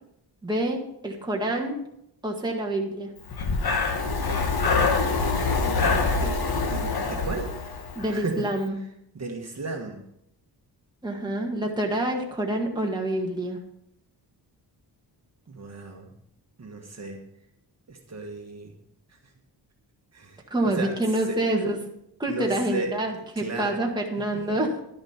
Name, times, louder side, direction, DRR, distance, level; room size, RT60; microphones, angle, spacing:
voice 1, 0.4-1.8 2.2-3.1 8.0-8.8 11.0-13.6 20.5-21.8 22.2-24.7, right 1 dB, 10° right, 0 dB, 1.7 m, -27 dB
Breathing, 3.3-8.2, left 4 dB, 60° left, 1.4 m, -25 dB
voice 2, 5.5-7.5 8.1-8.5 9.1-10.1 15.5-16.1 16.6-17.3 17.9-18.7 20.1-20.9 21.3-21.4 22.3-22.9 23.4-23.8 24.3-24.6, right 3 dB, 40° right, 1 dB, 1.6 m, -35 dB
11.5 x 10.5 x 4.4 m, 0.78 s
wide cardioid pair, 145°, 42 cm